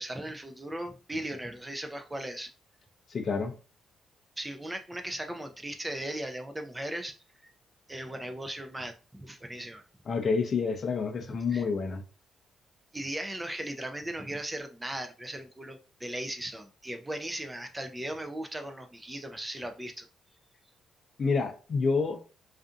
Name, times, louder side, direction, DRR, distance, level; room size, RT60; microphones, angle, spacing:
voice 1, 0.0-2.5 4.4-7.1 7.4-7.5 7.9-9.8 11.3-11.7 12.9-20.1, right 1 dB, 15° right, 0.3 m, -37 dB
voice 2, 3.1-3.5 10.1-12.0 21.2-22.2, left 4 dB, 45° left, 0.5 m, -28 dB
2.5 x 2.4 x 2.4 m
cardioid pair, 90°, 0 cm